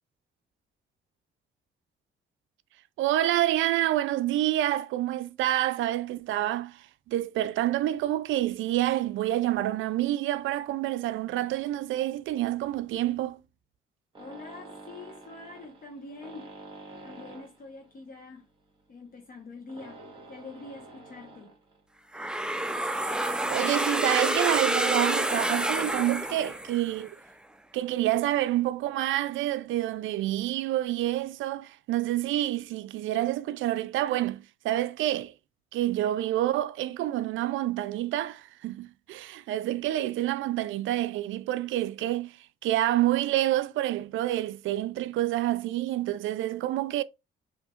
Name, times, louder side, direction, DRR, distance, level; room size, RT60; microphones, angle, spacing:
voice 1, 3.0-6.8 7.1-13.4 23.4-27.1 27.7-35.3 35.7-42.3 42.6-47.0, right 14 dB, 80° right, 0.4 m, -28 dB
sound 1, 14.1-21.9 22.2-22.5 23.0-23.1 23.4-23.5 24.6-25.2 26.4-26.6 27.0-27.4 28.2-28.3 28.5-28.6 28.8-28.9, right 2 dB, 25° right, 1.9 m, -48 dB
voice 2, 14.2-16.5 17.0-18.5 18.9-20.0 20.3-21.5, left 3 dB, 45° left, 1.1 m, -45 dB
sound 2, 22.1-27.1, right 1 dB, 5° right, 0.4 m, -28 dB
5.3 x 2.8 x 2.4 m
cardioid pair, 90°, 20 cm